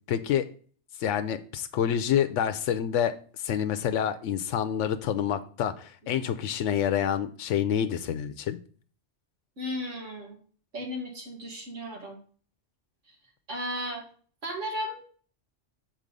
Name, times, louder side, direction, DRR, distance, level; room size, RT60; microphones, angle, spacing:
voice 1, 0.1-0.4 1.0-3.1 3.4-8.6, left 9 dB, 90° left, 9 dB, 0.9 m, -27 dB
voice 2, 9.6-10.4 10.7-12.2 13.5-14.0 14.4-15.0, equal, 85° right, -1 dB, 2.4 m, -35 dB
6.2 x 4.5 x 5.2 m, 0.44 s
omnidirectional pair, 1.2 m